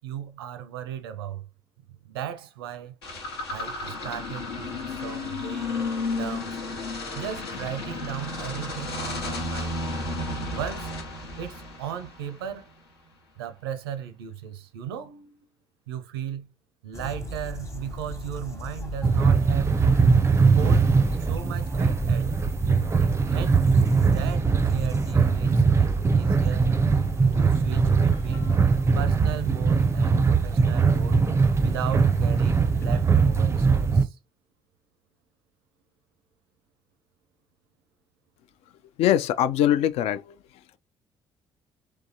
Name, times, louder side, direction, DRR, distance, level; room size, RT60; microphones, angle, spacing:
voice 1, 0.0-1.5 1.9-3.0 3.5-5.8 6.1-6.6 7.1-9.8 10.5-10.9 11.4-12.7 13.4-15.4 15.9-16.5 16.8-20.1 20.5-20.9 21.3-22.4 23.3-23.6 24.0-26.7 27.3-28.5 28.9-31.2 31.6-34.2, right 9 dB, 75° right, 0.5 m, -36 dB
sound 1, 3.0-12.5, left 2 dB, 75° left, 0.9 m, -32 dB
sound 2, 16.9-33.0, left 1 dB, 20° left, 1.1 m, -37 dB
sound 3, 19.0-34.0, right 5 dB, 20° right, 0.4 m, -21 dB
voice 2, 39.0-40.4, left 11 dB, 55° left, 0.4 m, -22 dB
3.4 x 3.2 x 2.7 m
figure-of-eight pair, 45°, 13 cm